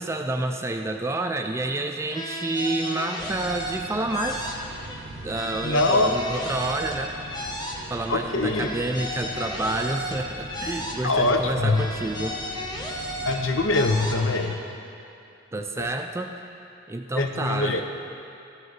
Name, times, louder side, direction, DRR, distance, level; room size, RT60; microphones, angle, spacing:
voice 1, 0.0-4.5 5.2-7.4 7.9-12.4 15.5-16.4 16.9-17.8, right 2 dB, 15° right, 5 dB, 0.3 m, -29 dB
sound 1, 2.1-5.0 5.3-8.2 8.5-11.4 11.7-14.6, left 1 dB, 20° left, 0.8 m, -34 dB
sound 2, 3.2-14.2, right 2 dB, 50° right, 0.7 m, -41 dB
voice 2, 5.6-6.1 8.1-8.7 11.0-11.8 13.3-14.6 15.8-15.9 17.2-17.8, left 2 dB, 85° left, 5 dB, 0.8 m, -23 dB
13.5 x 7.8 x 4.0 m, 2.8 s
head